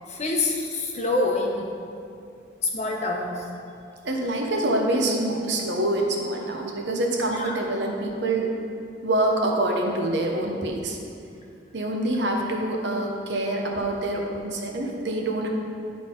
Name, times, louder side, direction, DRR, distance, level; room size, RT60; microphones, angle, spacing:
voice 1, 0.1-1.7 2.6-3.5 7.2-7.6, left 2 dB, 40° left, 0 dB, 0.8 m, -26 dB
voice 2, 4.0-8.6 9.0-11.0 11.7-15.5, right 1 dB, 70° right, 0 dB, 0.9 m, -26 dB
10.0 x 4.0 x 3.7 m, 2.5 s
head